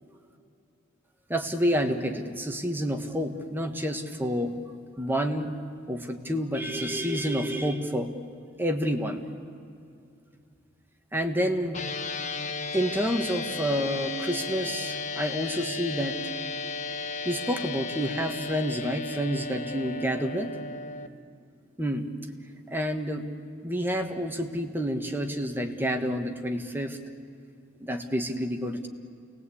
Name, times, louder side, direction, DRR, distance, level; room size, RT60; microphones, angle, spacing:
voice 1, 1.3-4.6 5.0-5.5 5.9-8.1 8.6-9.2 11.1-11.8 12.7-16.2 17.2-20.5 21.8-22.1 22.7-23.3 23.6-27.0 27.8-28.9, equal, 10° right, 4 dB, 1.5 m, -29 dB
sound 1, 11.7-21.1, left 3 dB, 40° left, 1.1 m, -34 dB
28.5 x 19.5 x 8.5 m, 2.4 s
head